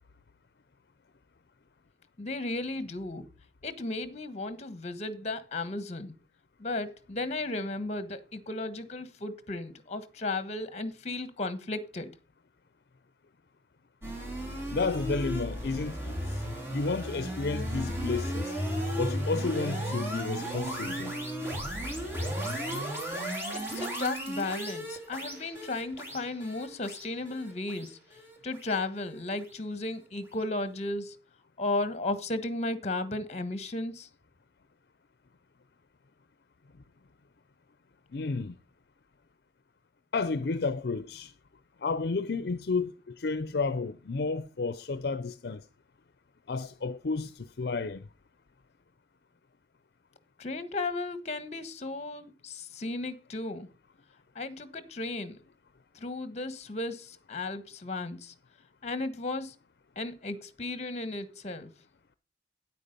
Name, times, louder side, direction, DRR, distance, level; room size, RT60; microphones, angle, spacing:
voice 1, 2.2-3.3 3.6-6.1 6.6-12.1 23.5-28.0 28.4-31.2 31.6-34.1 50.4-53.7 54.3-55.4 55.9-58.3 58.8-59.5 60.0-61.7, left 2 dB, 40° left, 1.2 m, -35 dB
sound 1, 14.0-29.2, equal, 15° right, 3.7 m, -35 dB
voice 2, 14.7-16.4 16.7-18.5 19.0-21.1 38.1-38.6 40.1-41.3 41.8-45.6 46.5-48.0, left 4 dB, 60° left, 0.5 m, -31 dB
9.6 x 8.5 x 5.2 m
head